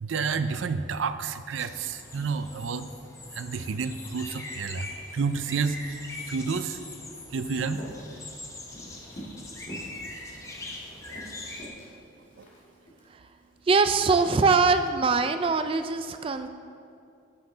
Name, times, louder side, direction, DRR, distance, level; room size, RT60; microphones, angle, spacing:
voice 1, 0.0-2.9 3.3-6.0 6.3-6.8 7.3-7.8 12.4-12.5, right 5 dB, 85° right, 11 dB, 0.5 m, -30 dB
sound 1, 1.6-11.7, left 2 dB, 15° left, 1.0 m, -42 dB
Walk footsteps, 7.7-9.4 9.7-10.0 10.3-13.0 13.6-13.8, right 1 dB, 45° left, 2.0 m, -45 dB
voice 2, 13.7-16.5, right 4 dB, 30° right, 9 dB, 0.3 m, -23 dB
11.5 x 7.6 x 3.9 m, 2.5 s
head